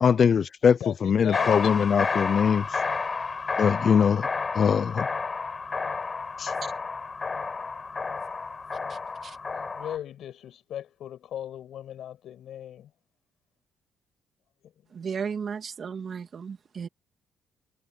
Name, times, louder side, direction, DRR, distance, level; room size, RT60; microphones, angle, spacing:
voice 1, 0.0-2.8 3.6-4.3 4.5-5.1 6.4-6.5, left 7 dB, 50° left, 0.4 m, -22 dB
voice 2, 0.8-1.8 9.5-12.9, left 10 dB, 70° left, 7.2 m, -37 dB
sound 1, 1.3-10.0, left 4 dB, 35° left, 7.1 m, -31 dB
voice 3, 8.9-9.4 14.9-16.9, right 6 dB, 50° right, 2.7 m, -35 dB
cardioid pair, 90°, 0 cm